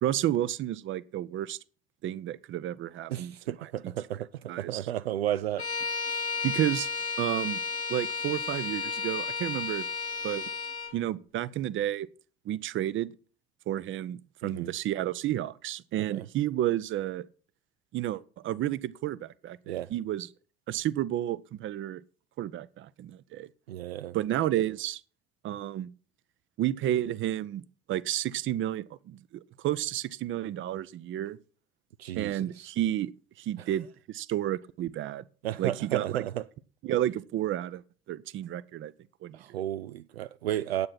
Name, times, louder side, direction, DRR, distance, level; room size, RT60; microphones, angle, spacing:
voice 1, 0.0-1.6 2.0-3.3 3.8-3.9 4.5-4.8 6.4-6.9 7.2-7.6 7.9-9.8 10.2-10.4 10.9-12.1 12.5-13.1 13.7-17.3 17.9-20.3 20.7-22.0 22.4-23.5 24.1-25.0 25.4-25.9 26.6-27.6 27.9-31.4 32.1-33.1 33.4-35.2 35.6-36.2 36.8-37.8 38.1-38.9 39.2-39.4, right 12 dB, 40° right, 0.7 m, -31 dB
voice 2, 3.1-5.7 14.4-14.7 16.1-16.2 19.7-19.9 23.7-24.2 32.0-32.7 33.6-33.7 35.4-36.4 39.3-40.9, right 12 dB, 75° right, 0.5 m, -33 dB
Bowed string instrument, 5.6-11.0, left 5 dB, 90° left, 0.9 m, -33 dB
9.6 x 8.6 x 5.9 m
figure-of-eight pair, 55°, 31 cm